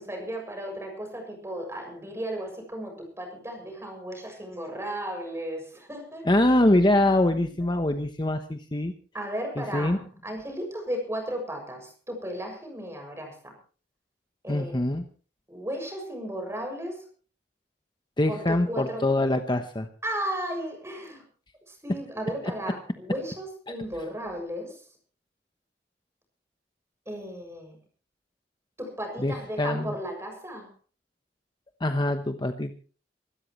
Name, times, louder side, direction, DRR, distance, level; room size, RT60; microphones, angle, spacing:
voice 1, 0.0-6.5 7.4-7.5 9.1-13.6 14.4-14.8 15.5-17.1 18.3-19.0 20.0-21.2 21.7-24.8 27.1-27.8 28.8-30.7, right 1 dB, 15° right, 3 dB, 6.9 m, -35 dB
voice 2, 6.3-8.9 9.6-10.0 14.5-15.0 18.2-19.9 29.2-29.9 31.8-32.7, left 1 dB, 25° left, 7 dB, 1.0 m, -24 dB
25.5 x 13.5 x 3.2 m, 0.39 s
head